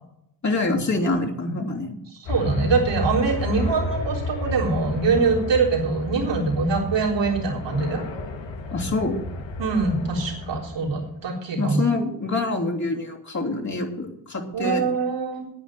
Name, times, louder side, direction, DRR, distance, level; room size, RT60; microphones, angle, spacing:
voice 1, 0.4-2.0 8.7-9.2 11.6-14.9, left 2 dB, 40° left, 0 dB, 3.1 m, -26 dB
voice 2, 2.1-8.0 9.6-11.8 14.5-15.5, right 4 dB, 75° right, -2 dB, 4.0 m, -23 dB
sound 1, 2.3-11.0, left 2 dB, 80° left, 1.8 m, -31 dB
9.6 x 9.4 x 7.7 m, 0.80 s
cardioid pair, 65°, 44 cm